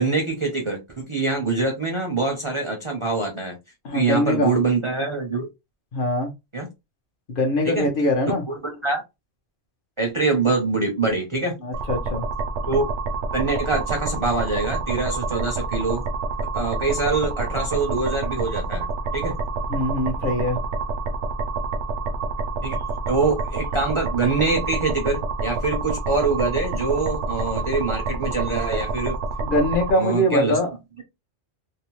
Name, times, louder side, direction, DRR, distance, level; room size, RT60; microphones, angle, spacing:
voice 1, 0.0-3.6 3.9-5.5 6.5-6.7 7.6-7.9 8.3-9.0 10.0-11.5 12.6-12.9 13.3-16.0 16.5-18.9 19.1-19.3 22.6-22.8 23.1-29.1 29.9-30.6, right 3 dB, 35° right, 0.5 m, -24 dB
voice 2, 3.8-4.5 5.9-6.3 7.3-8.4 11.6-12.2 19.7-20.6 29.4-30.7, left 1 dB, 55° left, 0.8 m, -22 dB
sound 1, 11.7-29.9, right 3 dB, 80° right, 0.9 m, -28 dB
2.7 x 2.0 x 3.0 m
omnidirectional pair, 1.2 m